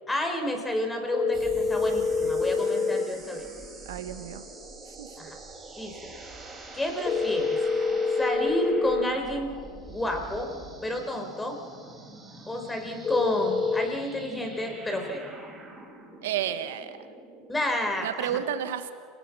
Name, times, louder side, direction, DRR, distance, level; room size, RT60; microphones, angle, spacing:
voice 1, 0.1-3.5 5.2-5.4 5.8-6.1 6.7-7.6 8.2-9.5 9.9-10.5 10.8-11.6 12.5-15.3 17.5-18.4, left 1 dB, 10° left, 4 dB, 4.8 m, -30 dB
sound 1, 1.1-3.0 7.0-9.0 13.0-13.9, left 5 dB, 35° left, 1.6 m, -26 dB
sound 2, 1.3-18.1, right 2 dB, 15° right, 6.1 m, -45 dB
voice 2, 3.8-4.4 4.9-5.1 16.2-17.0 18.0-18.9, right 10 dB, 75° right, 10 dB, 1.3 m, -31 dB
28.5 x 19.0 x 6.3 m, 2.1 s
hypercardioid pair, 90°, 0 cm